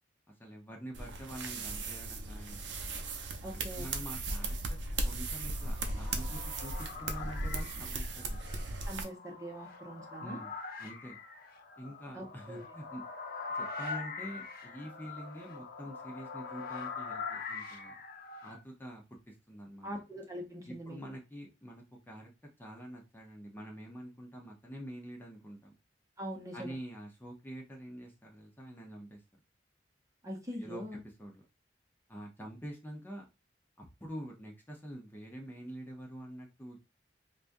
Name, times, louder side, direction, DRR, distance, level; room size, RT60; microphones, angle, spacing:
voice 1, 0.4-2.6 3.5-8.4 10.2-10.5 10.8-11.2 11.8-13.0 13.5-17.9 18.4-19.9 20.7-22.3 22.6-25.7 26.5-29.2 30.6-30.8 31.2-31.4 32.1-33.3 33.8-36.8, equal, 10° left, 0 dB, 0.8 m, -46 dB
sound 1, 0.9-9.0, right 2 dB, 90° right, 0.7 m, -37 dB
voice 2, 3.4-3.9 8.9-10.4 12.1-12.7 19.8-21.0 26.2-26.8 30.2-31.0, equal, 20° right, -1 dB, 0.9 m, -42 dB
sound 2, 5.2-18.6, left 4 dB, 55° left, 0.9 m, -43 dB
5.0 x 2.3 x 2.6 m, 0.26 s
head